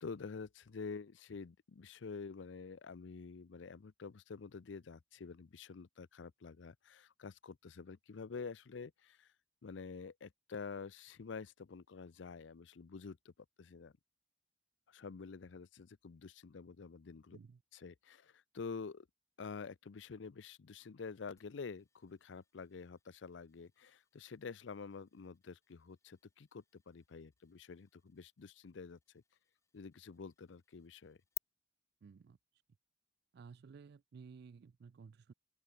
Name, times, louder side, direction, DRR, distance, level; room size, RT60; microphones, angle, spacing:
voice 1, 0.0-9.3 9.6-13.3 13.6-13.9 14.9-17.4 17.7-19.1 19.4-29.2 29.7-31.2, left 5 dB, 75° left, 0.5 m, -48 dB
mosquito-ringtone, 21.4-31.4, left 7 dB, 15° left, 0.4 m, -58 dB
voice 2, 32.0-32.4 33.3-35.3, right 5 dB, 60° right, 0.4 m, -55 dB
open air
head